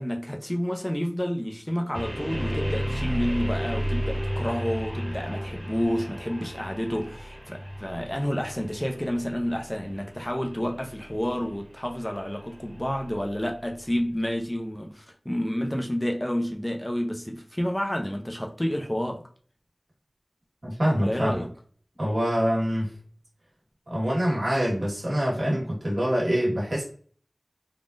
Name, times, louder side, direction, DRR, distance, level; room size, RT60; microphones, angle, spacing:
voice 1, 0.0-19.2 20.9-21.5, equal, 20° left, 0.6 m, -29 dB
sound 1, 1.9-13.9, equal, 5° right, 1.0 m, -33 dB
voice 2, 20.6-21.5 22.0-22.9 23.9-26.8, equal, 90° right, 1.4 m, -25 dB
3.6 x 2.4 x 2.5 m
wide cardioid pair, 45°, 0 cm